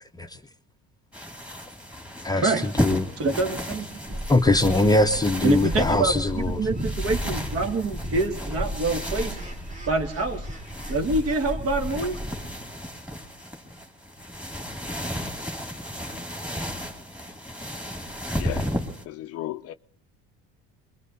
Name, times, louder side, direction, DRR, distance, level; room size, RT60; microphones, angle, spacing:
sound 1, 1.1-19.1, equal, 5° right, 2.3 m, -34 dB
voice 1, 2.2-3.1 4.3-6.6, left 2 dB, 10° left, 0.7 m, -22 dB
voice 2, 3.2-4.2 5.4-9.4 9.9-10.5 10.9-12.2, right 3 dB, 50° right, 2.1 m, -26 dB
sound 2, 4.1-12.5, equal, 25° right, 2.4 m, -34 dB
voice 3, 18.3-18.7 19.1-19.7, left 14 dB, 50° left, 0.6 m, -35 dB
24.0 x 22.0 x 2.7 m
cardioid pair, 120°, 31 cm